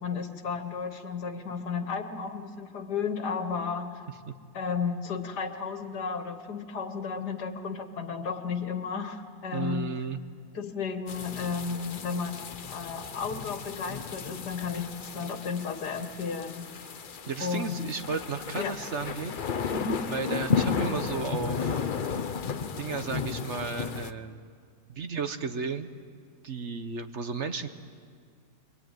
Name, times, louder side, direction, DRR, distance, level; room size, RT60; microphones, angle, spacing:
voice 1, 0.0-4.0 4.5-9.9 10.5-16.7 17.4-17.9 18.6-18.8 19.7-20.1, left 5 dB, 85° left, 7 dB, 2.1 m, -33 dB
voice 2, 9.5-10.2 17.3-19.3 19.6-19.7 20.1-22.0 22.8-24.4 24.9-25.9 26.4-27.7, right 5 dB, 50° right, 8 dB, 1.3 m, -34 dB
sound 1, 11.1-24.1, left 6 dB, 45° left, 0.7 m, -34 dB
24.0 x 23.0 x 9.2 m, 2.1 s
omnidirectional pair, 1.7 m